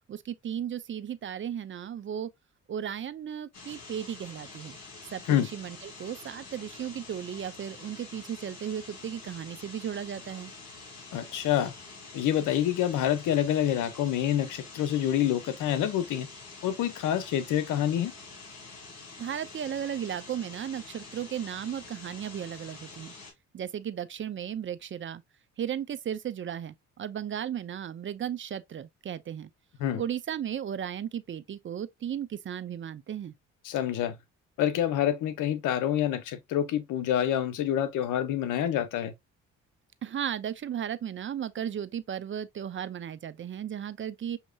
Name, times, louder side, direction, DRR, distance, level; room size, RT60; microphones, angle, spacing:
voice 1, 0.1-2.3 2.7-4.8 5.1-10.5 19.2-23.1 23.5-25.2 25.6-29.5 30.0-33.3 40.0-44.4, right 9 dB, 40° right, 0.5 m, -35 dB
sound 1, 3.5-23.3, left 3 dB, 55° left, 2.7 m, -47 dB
voice 2, 11.1-11.7 12.1-16.3 16.6-18.1 29.8-30.0 33.6-34.2 34.6-39.1, left 11 dB, 85° left, 0.9 m, -27 dB
6.4 x 2.9 x 2.3 m
cardioid pair, 90°, 30 cm